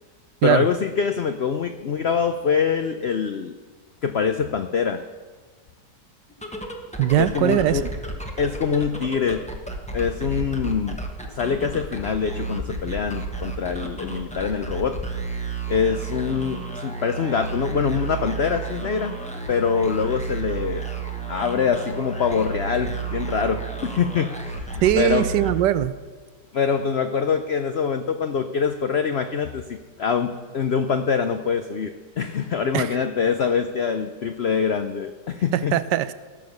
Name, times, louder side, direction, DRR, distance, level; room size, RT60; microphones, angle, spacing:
voice 1, 0.4-3.6 4.0-5.0 7.2-7.8 8.4-9.5 9.9-11.0 11.3-15.0 15.7-19.2 19.5-20.9 21.3-25.3 26.5-35.8, left 6 dB, 80° left, 7 dB, 0.5 m, -24 dB
sound 1, 6.3-26.1, right 3 dB, 5° left, 0.7 m, -32 dB
voice 2, 7.0-7.9 24.8-25.9 32.7-33.0 35.5-36.1, right 12 dB, 80° right, 15 dB, 1.2 m, -21 dB
16.5 x 7.1 x 6.5 m, 1.4 s
omnidirectional pair, 1.9 m